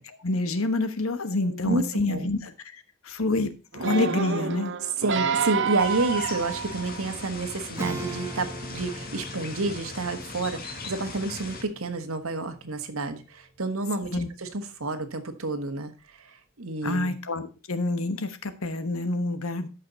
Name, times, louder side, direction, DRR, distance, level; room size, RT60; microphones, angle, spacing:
voice 1, 0.0-4.7 14.1-14.3 16.8-19.7, left 2 dB, 75° left, 1.3 m, -28 dB
voice 2, 1.4-2.3 4.8-15.9 16.2-17.2, right 3 dB, 80° right, 1.5 m, -30 dB
sound 1, 3.7-7.3 7.9-8.0, right 6 dB, 55° right, 0.7 m, -29 dB
sound 2, 5.8-11.6, left 3 dB, 45° left, 1.9 m, -39 dB
Acoustic guitar / Strum, 7.8-13.8, right 2 dB, 10° right, 1.3 m, -40 dB
13.5 x 5.8 x 4.0 m
head